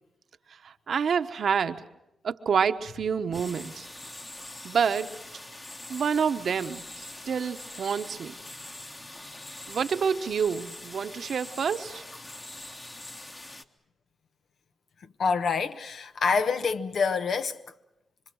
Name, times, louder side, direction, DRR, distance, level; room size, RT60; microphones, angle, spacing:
voice 1, 0.6-1.8 2.2-3.9 4.6-5.1 5.9-8.3 9.7-12.0, right 6 dB, 70° right, 1.0 m, -28 dB
sound 1, 3.3-13.6, left 1 dB, 25° left, 1.5 m, -43 dB
voice 2, 15.0-17.6, left 5 dB, 70° left, 1.1 m, -27 dB
26.0 x 25.0 x 6.3 m
cardioid pair, 60°, 0 cm